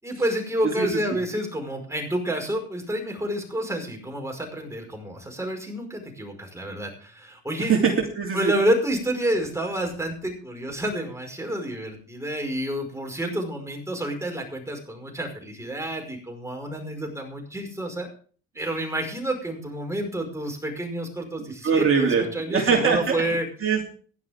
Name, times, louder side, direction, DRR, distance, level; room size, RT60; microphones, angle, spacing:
voice 1, 0.0-7.7 8.3-18.1 18.6-23.5, right 1 dB, 10° right, 2 dB, 5.4 m, -29 dB
voice 2, 7.6-8.5 21.6-22.2 22.5-23.2 23.6-23.8, right 6 dB, 45° right, 0 dB, 3.0 m, -22 dB
16.0 x 11.5 x 3.6 m, 0.43 s
cardioid pair, 90°, 30 cm